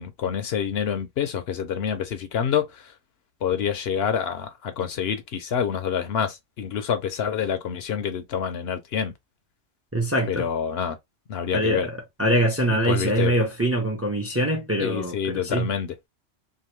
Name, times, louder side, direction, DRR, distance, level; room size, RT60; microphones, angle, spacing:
voice 1, 0.0-3.0 3.4-9.1 10.3-11.0 11.3-11.9 12.6-13.4 14.8-16.0, left 8 dB, 65° left, 0.8 m, -27 dB
voice 2, 9.9-10.5 11.5-11.9 12.2-15.1 15.4-15.7, right 1 dB, 15° right, 0.5 m, -23 dB
2.8 x 2.4 x 3.0 m
omnidirectional pair, 1.2 m